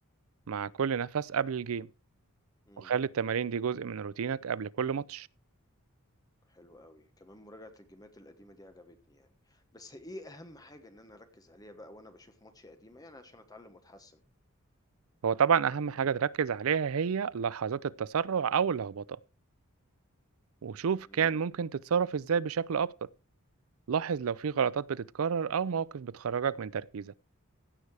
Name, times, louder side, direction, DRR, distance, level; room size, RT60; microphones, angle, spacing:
voice 1, 0.5-1.9 2.8-5.3 15.2-19.2 20.6-23.1 23.9-27.1, right 7 dB, 70° right, 0.4 m, -30 dB
voice 2, 6.5-14.2 21.1-21.4, left 1 dB, 15° left, 1.2 m, -51 dB
16.0 x 6.7 x 4.8 m
head